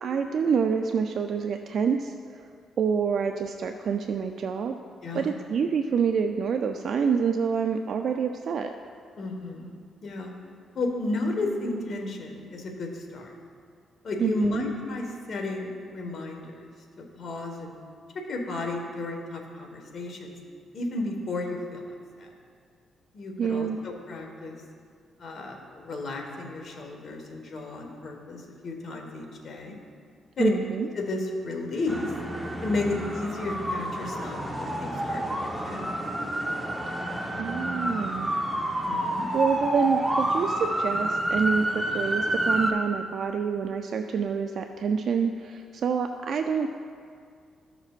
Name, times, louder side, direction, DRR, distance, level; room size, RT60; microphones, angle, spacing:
voice 1, 0.0-2.5 2.8-4.7 5.1-8.7 14.2-14.6 23.4-23.8 30.4-30.9 37.4-38.3 39.3-46.7, right 6 dB, 65° right, 5 dB, 0.4 m, -27 dB
voice 2, 5.0-5.3 9.2-9.7 10.0-10.3 10.7-13.3 14.0-16.6 17.0-17.8 18.1-20.3 20.7-21.8 22.2-22.3 23.1-24.6 25.2-29.8 30.4-30.5 30.9-32.1 32.6-35.9 38.8-39.3, left 2 dB, 55° left, 2 dB, 1.4 m, -33 dB
sound 1, 31.9-42.7, right 1 dB, 10° right, 1.0 m, -29 dB
14.5 x 5.8 x 2.4 m, 2.2 s
cardioid pair, 75°, 0 cm